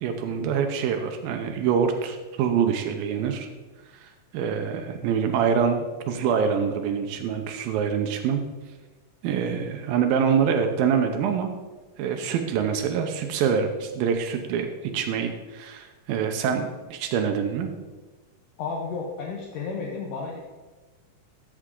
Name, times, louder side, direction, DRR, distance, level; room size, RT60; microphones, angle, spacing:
voice 1, 0.0-3.5 3.9-8.4 9.2-11.5 12.0-17.7, right 7 dB, 85° right, 5 dB, 2.5 m, -25 dB
voice 2, 18.6-20.4, left 4 dB, 70° left, -1 dB, 2.3 m, -32 dB
13.0 x 6.5 x 3.7 m, 1.2 s
omnidirectional pair, 4.1 m